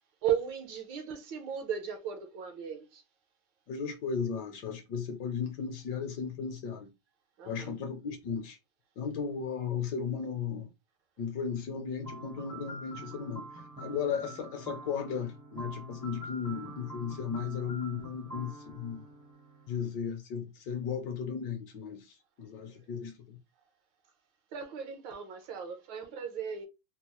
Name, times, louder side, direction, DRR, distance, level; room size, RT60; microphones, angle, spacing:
voice 1, 0.2-3.0 7.4-7.7 22.6-22.7 24.5-26.7, right 8 dB, 80° right, 1.5 m, -36 dB
voice 2, 3.7-6.9 7.4-8.6 9.0-10.7 11.2-19.0 19.7-23.4, left 6 dB, 70° left, 1.1 m, -35 dB
sound 1, 12.0-19.9, right 2 dB, 20° right, 0.5 m, -46 dB
4.2 x 2.0 x 2.9 m
omnidirectional pair, 2.1 m